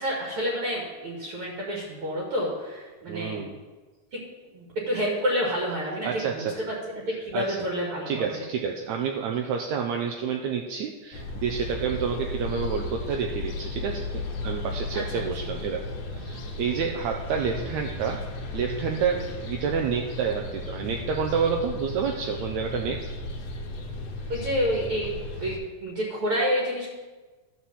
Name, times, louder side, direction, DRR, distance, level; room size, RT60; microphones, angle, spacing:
voice 1, 0.0-3.5 4.1-4.2 4.5-8.5 14.9-15.2 17.6-17.7 19.1-19.2 24.3-25.1 25.4-26.9, equal, 45° right, -2 dB, 2.3 m, -29 dB
voice 2, 3.1-3.5 6.0-6.5 7.3-7.6 8.1-15.8 16.1-18.2 18.5-23.0, right 6 dB, 75° right, 2 dB, 1.8 m, -29 dB
sound 1, 11.1-25.6, left 2 dB, 65° left, 2.2 m, -35 dB
12.5 x 4.6 x 7.1 m, 1.3 s
omnidirectional pair, 3.7 m